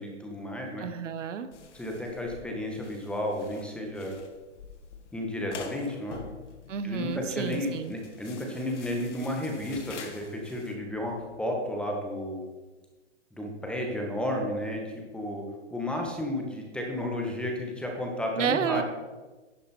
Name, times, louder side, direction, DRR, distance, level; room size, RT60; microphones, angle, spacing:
voice 1, 0.0-0.9 1.7-4.1 5.1-6.2 6.8-12.4 13.3-15.4 15.7-18.8, left 1 dB, 5° left, 1 dB, 1.3 m, -32 dB
voice 2, 0.8-1.5 6.7-7.9 18.4-18.8, right 7 dB, 90° right, 11 dB, 0.9 m, -30 dB
sound 1, 1.5-10.8, left 6 dB, 75° left, 1.5 m, -47 dB
11.0 x 7.2 x 4.4 m, 1.2 s
hypercardioid pair, 140°, 36 cm